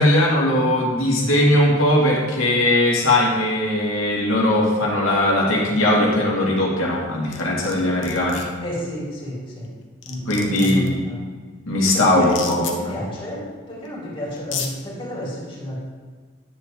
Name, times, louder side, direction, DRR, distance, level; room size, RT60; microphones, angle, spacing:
voice 1, 0.0-8.5 10.3-11.1 11.7-13.0, left 1 dB, 85° left, -4 dB, 2.4 m, -19 dB
sound 1, 7.3-7.7 8.0-8.4 9.6-9.7 10.0-10.9 12.2-12.7 13.9-14.0 14.4-14.7, left 7 dB, 65° left, 1.2 m, -31 dB
voice 2, 8.6-9.7 10.0-11.2 11.9-15.8, equal, 25° left, -5 dB, 3.2 m, -31 dB
10.5 x 9.6 x 3.9 m, 1.5 s
head